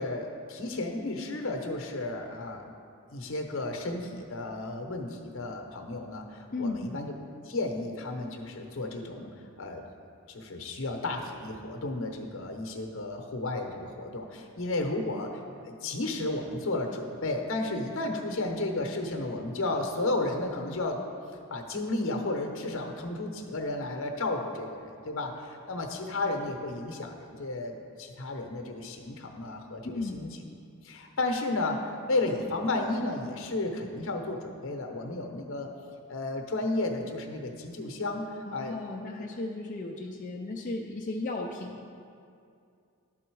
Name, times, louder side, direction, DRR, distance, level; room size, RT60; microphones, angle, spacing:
voice 1, 0.0-2.6 3.1-7.1 7.4-9.3 9.6-9.8 10.3-21.0 21.5-30.4 30.8-35.7 36.1-38.8, left 2 dB, 60° left, 3 dB, 0.8 m, -33 dB
voice 2, 6.5-6.9 29.8-30.2 38.5-41.9, left 2 dB, 35° left, -2 dB, 0.4 m, -35 dB
11.5 x 3.9 x 4.6 m, 2.4 s
head